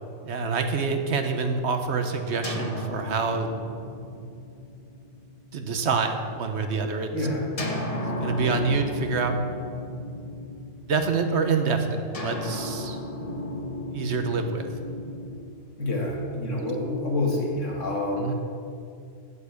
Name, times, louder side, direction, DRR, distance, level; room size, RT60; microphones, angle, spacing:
voice 1, 0.2-3.5 5.5-7.1 7.7-7.9 8.2-9.4 10.8-13.0 13.9-14.7 18.2-18.3, right 4 dB, 65° right, 6 dB, 1.1 m, -26 dB
sound 1, 2.4-6.2 7.6-11.1 12.1-16.3, left 1 dB, 30° left, 1.1 m, -34 dB
voice 2, 7.1-7.5 15.8-18.3, left 2 dB, 80° left, -1 dB, 2.2 m, -27 dB
8.5 x 7.3 x 8.2 m, 2.4 s
omnidirectional pair, 1.3 m